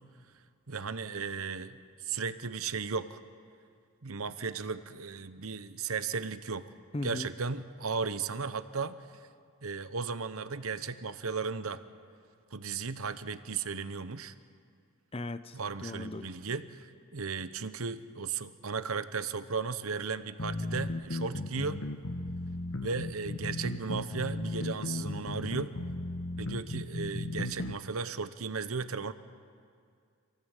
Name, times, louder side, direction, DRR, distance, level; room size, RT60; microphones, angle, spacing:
voice 1, 0.7-3.2 4.0-6.7 7.0-9.0 9.6-11.8 12.5-14.3 15.5-16.9 17.1-21.8 22.8-25.7 26.4-29.1, right 5 dB, 80° right, 12 dB, 1.0 m, -35 dB
voice 2, 6.9-7.3 15.1-16.3, left 2 dB, 25° left, 13 dB, 0.6 m, -38 dB
sound 1, 20.4-27.8, left 2 dB, 70° left, 1.3 m, -35 dB
27.0 x 17.0 x 8.2 m, 2.2 s
head